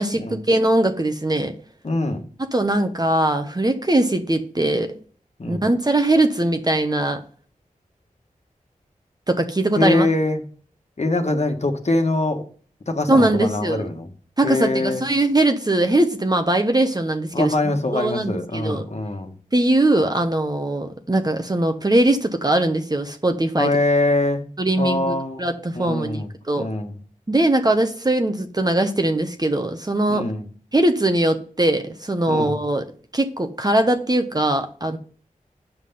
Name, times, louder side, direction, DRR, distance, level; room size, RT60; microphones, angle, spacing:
voice 1, 0.0-1.5 2.5-5.0 5.5-7.2 9.3-10.1 13.1-13.9 14.4-17.5 17.9-18.9 19.5-23.8 24.6-26.7 27.3-30.3 30.7-32.8 33.1-35.0, right 1 dB, 25° right, 6 dB, 1.0 m, -21 dB
voice 2, 1.8-2.2 5.4-5.6 9.8-10.4 11.0-12.4 12.9-14.1 14.4-15.1 17.3-19.3 23.6-24.4 24.8-25.4 25.7-26.3 26.6-26.9 30.1-30.5 32.3-32.6, left 2 dB, 50° left, 4 dB, 1.5 m, -23 dB
7.7 x 5.8 x 5.5 m, 0.44 s
cardioid pair, 45°, 14 cm